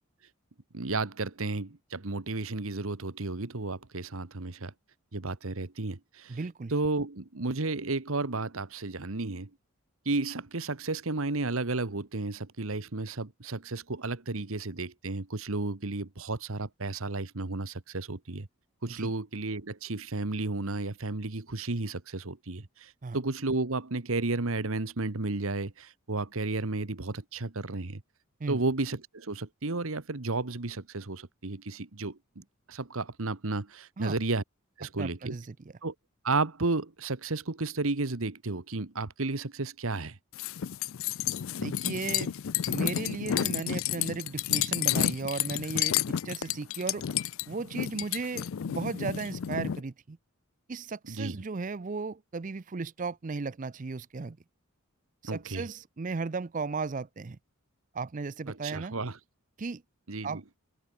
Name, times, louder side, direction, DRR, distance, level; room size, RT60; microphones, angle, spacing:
voice 1, 0.7-4.7 5.1-6.4 6.7-9.5 10.0-18.5 18.8-28.0 28.5-34.4 34.8-35.4 35.8-35.9 36.2-40.2 51.1-51.4 55.2-55.7 58.5-59.2 60.1-60.4, right 3 dB, 70° right, 1.3 m, -33 dB
voice 2, 6.3-6.7 18.9-19.1 23.0-23.2 28.4-28.6 34.0-34.2 35.0-35.5 41.6-42.3 42.7-47.1 47.5-50.2 50.7-54.4 55.2-57.4 57.9-58.9 59.6-59.8 60.2-60.4, right 4 dB, 35° right, 0.5 m, -35 dB
sound 1, 40.3-49.8, left 10 dB, 65° left, 0.4 m, -31 dB
head